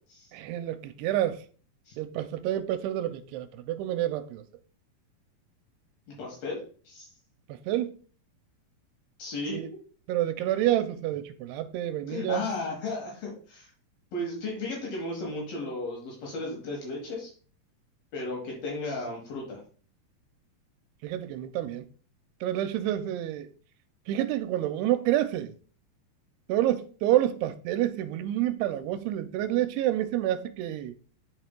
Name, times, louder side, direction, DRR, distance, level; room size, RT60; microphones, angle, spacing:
voice 1, 0.3-1.4 2.0-4.4 7.5-7.9 9.5-9.7 10.1-12.5 21.0-21.9 22.4-23.5 24.1-25.6 26.5-30.9, right 13 dB, 85° right, 2.6 m, -28 dB
voice 2, 6.1-7.1 9.2-9.7 12.1-13.7 14.1-17.3 18.1-19.6, left 2 dB, 70° left, 3.1 m, -35 dB
10.5 x 4.3 x 2.2 m
omnidirectional pair, 4.5 m